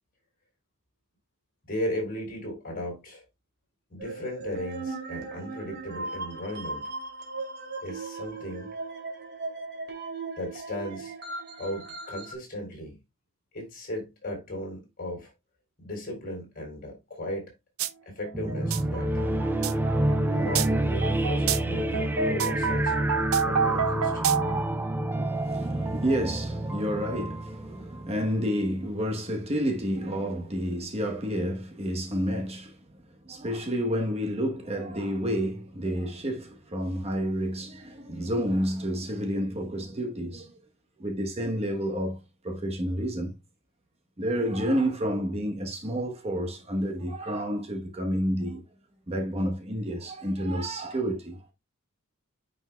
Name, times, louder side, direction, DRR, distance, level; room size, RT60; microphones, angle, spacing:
voice 1, 1.7-3.3 3.9-6.9 7.8-8.7 10.4-11.1 11.6-13.0 13.5-15.3 15.8-17.5 18.1-19.1 20.3-22.9 23.4-24.3, left 1 dB, 40° left, 3.8 m, -36 dB
sound 1, 4.0-12.3, right 3 dB, 45° right, 2.6 m, -38 dB
sound 2, 17.8-17.9 18.2-24.7, right 7 dB, 70° right, 0.5 m, -29 dB
sound 3, 18.3-28.5, right 1 dB, 10° right, 0.5 m, -28 dB
voice 2, 25.2-32.8 33.2-40.6 41.0-43.3 44.2-48.6 49.1-51.5, equal, 30° right, 1.0 m, -30 dB
9.5 x 5.4 x 2.2 m
head